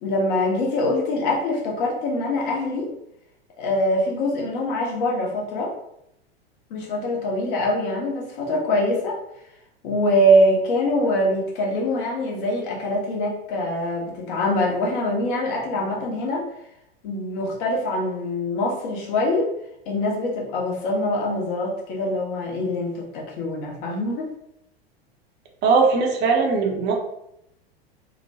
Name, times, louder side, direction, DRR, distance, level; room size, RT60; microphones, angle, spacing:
voice 1, 0.0-2.9 3.6-5.7 6.7-9.2 9.8-16.4 17.0-19.5 19.9-24.3, left 1 dB, 55° left, -2 dB, 1.0 m, -23 dB
voice 2, 25.6-26.9, right 4 dB, 35° right, 0 dB, 0.7 m, -19 dB
2.8 x 2.1 x 2.7 m, 0.79 s
hypercardioid pair, 90°, 31 cm